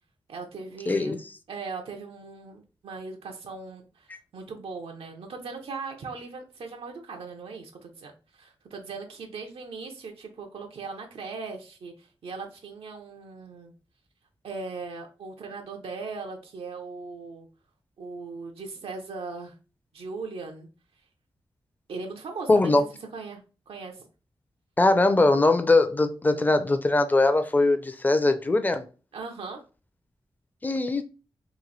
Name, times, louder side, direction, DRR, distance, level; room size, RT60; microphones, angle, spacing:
voice 1, 0.3-1.1 1.5-13.7 14.4-17.5 18.0-19.5 19.9-20.7 21.9-22.8 23.1-24.0 29.1-29.6, right 4 dB, 90° right, 0.7 m, -39 dB
voice 2, 0.9-1.2 22.5-22.8 24.8-28.8 30.6-31.0, left 2 dB, 20° left, 0.4 m, -21 dB
3.0 x 2.6 x 4.0 m
wide cardioid pair, 100°, 9 cm